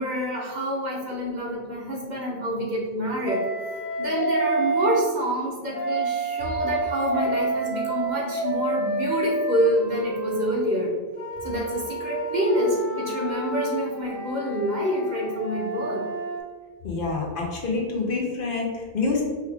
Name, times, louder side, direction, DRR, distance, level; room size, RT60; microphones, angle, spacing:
voice 1, 0.0-3.4 4.0-10.9 11.4-16.0, equal, 45° right, -3 dB, 1.0 m, -27 dB
Wind instrument woodwind instrument, 3.3-5.0 5.7-10.5 11.2-16.4, right 2 dB, 30° left, 1.1 m, -29 dB
voice 2, 16.8-19.2, left 3 dB, 60° left, -1 dB, 1.0 m, -27 dB
4.6 x 3.2 x 3.4 m, 1.5 s
omnidirectional pair, 1.1 m